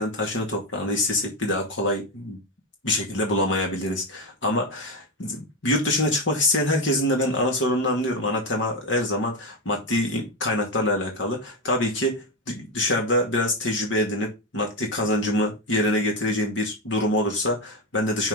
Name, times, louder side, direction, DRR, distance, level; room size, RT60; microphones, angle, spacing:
voice 1, 0.0-2.4 2.8-18.3, left 1 dB, 90° left, 2.2 m, -25 dB
5.8 x 4.5 x 5.6 m
head